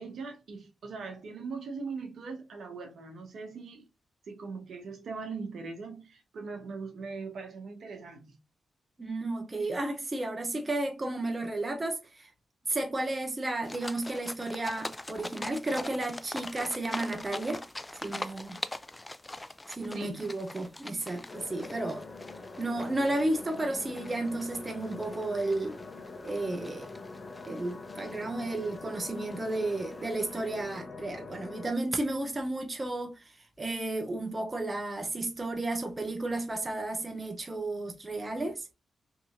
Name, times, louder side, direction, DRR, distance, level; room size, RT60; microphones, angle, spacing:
voice 1, 0.0-3.8 4.3-8.4 19.9-20.2, right 4 dB, 70° right, 0.9 m, -40 dB
voice 2, 9.0-12.3 12.7-17.6 18.0-18.6 19.7-22.0 22.6-25.8 26.2-26.9 27.5-38.7, right 2 dB, 30° right, 0.6 m, -33 dB
sound 1, 13.6-30.8, left 1 dB, 20° left, 0.3 m, -43 dB
sound 2, 21.3-31.7, left 3 dB, 50° left, 0.7 m, -44 dB
2.8 x 2.6 x 2.4 m
supercardioid pair, 45°, 0 cm